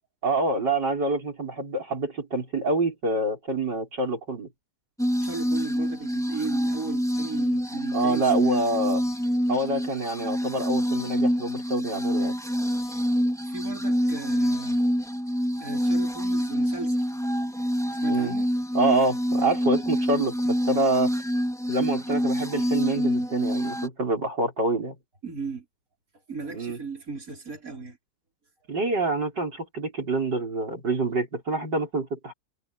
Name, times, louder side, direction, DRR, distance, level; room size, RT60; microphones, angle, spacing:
voice 1, 0.2-4.5 7.9-9.0 9.5-12.3 18.1-18.3 18.7-21.1 21.7-24.9 26.5-26.8 28.7-32.3, right 2 dB, 80° right, 6.5 m, -26 dB
sound 1, 5.0-23.9, equal, ahead, 3.9 m, -26 dB
voice 2, 5.2-8.5 13.5-14.8 15.6-17.1 17.9-18.5 25.2-25.7 26.3-28.0, right 4 dB, 50° right, 5.9 m, -36 dB
omnidirectional pair, 1.8 m